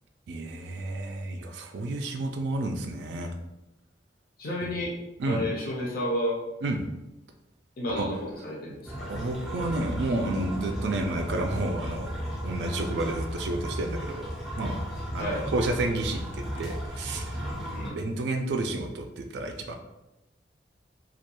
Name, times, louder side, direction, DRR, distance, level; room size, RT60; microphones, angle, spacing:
voice 1, 0.3-3.3 5.2-5.4 6.6-6.8 7.9-8.1 9.1-12.1 12.4-14.3 14.6-14.8 15.1-17.4 17.9-19.7, right 2 dB, 65° right, 4 dB, 0.3 m, -31 dB
voice 2, 4.4-5.0 5.3-6.4 7.8-9.1 15.2-15.5 17.7-18.0, left 1 dB, 55° left, -3 dB, 0.5 m, -31 dB
sound 1, 8.9-17.9, equal, ahead, 0.4 m, -34 dB
2.3 x 2.2 x 2.9 m, 0.94 s
head